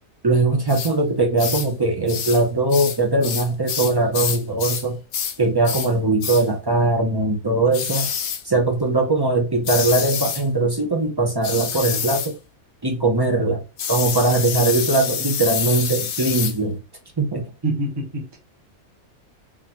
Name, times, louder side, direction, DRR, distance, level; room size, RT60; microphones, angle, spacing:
voice 1, 0.2-5.0 5.4-8.1 8.4-12.4 12.8-13.6 13.9-16.8 17.2-17.5, right 2 dB, 40° right, 0.3 m, -20 dB
sound 1, 0.7-0.9 1.4-1.7 2.1-2.4 2.7-4.9 5.1-5.4 5.6-5.9 6.2-6.5 7.7-8.4 9.6-10.4 11.4-12.3 13.8-16.6, left 8 dB, 60° left, 0.8 m, -27 dB
voice 2, 17.6-18.4, right 2 dB, 20° right, 1.0 m, -26 dB
3.7 x 3.3 x 2.9 m
omnidirectional pair, 1.5 m